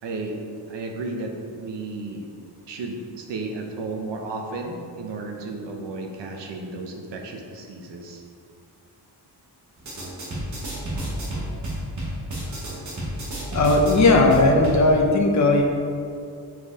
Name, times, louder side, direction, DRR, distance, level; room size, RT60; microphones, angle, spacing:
voice 1, 0.0-2.3 2.7-8.2, right 2 dB, 85° right, 2 dB, 1.1 m, -33 dB
sound 1, 9.8-14.8, right 1 dB, 45° right, 1.7 m, -31 dB
voice 2, 13.5-15.6, left 2 dB, 45° left, 1 dB, 0.9 m, -17 dB
7.7 x 4.7 x 4.8 m, 2.5 s
wide cardioid pair, 175°, 42 cm